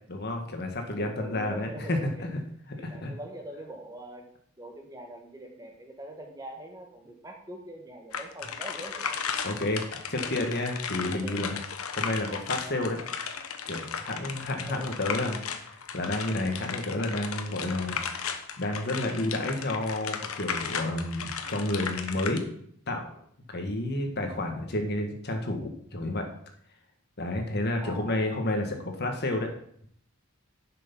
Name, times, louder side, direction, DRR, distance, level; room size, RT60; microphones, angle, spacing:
voice 1, 0.1-2.4 2.8-3.1 9.4-11.6 11.9-13.0 13.7-22.5 22.9-23.1 23.5-26.3 27.2-29.5, left 1 dB, 45° left, 4 dB, 1.7 m, -31 dB
voice 2, 1.0-2.3 2.8-4.3 4.6-9.2 11.1-11.4 14.7-14.9 27.8-28.3, right 1 dB, 15° right, 2 dB, 1.6 m, -43 dB
sound 1, 8.1-22.4, left 6 dB, 75° left, 1.1 m, -35 dB
11.0 x 6.7 x 5.5 m, 0.65 s
head